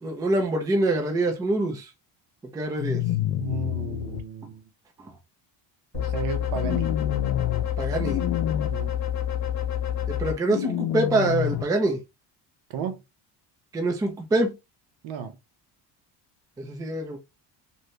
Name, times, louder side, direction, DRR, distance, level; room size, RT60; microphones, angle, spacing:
voice 1, 0.0-1.9 2.5-3.0 7.8-8.2 10.1-12.0 13.7-14.6 16.6-17.2, right 2 dB, 10° right, 0.3 m, -25 dB
sound 1, 2.8-4.2 6.5-7.6 8.0-8.7 10.4-11.6, left 12 dB, 70° left, 0.6 m, -28 dB
voice 2, 3.4-4.6 5.9-6.9 8.7-8.9 12.7-13.0 15.0-15.4, right 6 dB, 75° right, 0.9 m, -33 dB
sound 2, 5.9-10.3, left 10 dB, 40° left, 0.9 m, -28 dB
2.7 x 2.7 x 3.2 m
cardioid pair, 170°, 45 cm